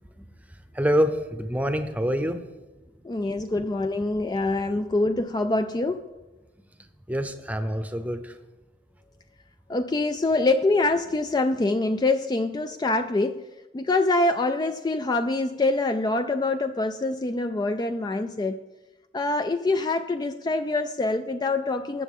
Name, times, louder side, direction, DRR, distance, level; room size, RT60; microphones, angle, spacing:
voice 1, 0.7-2.4 7.1-8.3, equal, 10° right, 8 dB, 0.7 m, -26 dB
voice 2, 3.0-6.1 9.7-13.4 13.7-18.6 19.1-22.0, left 2 dB, 20° left, 8 dB, 0.3 m, -25 dB
19.5 x 7.2 x 3.6 m, 1.1 s
head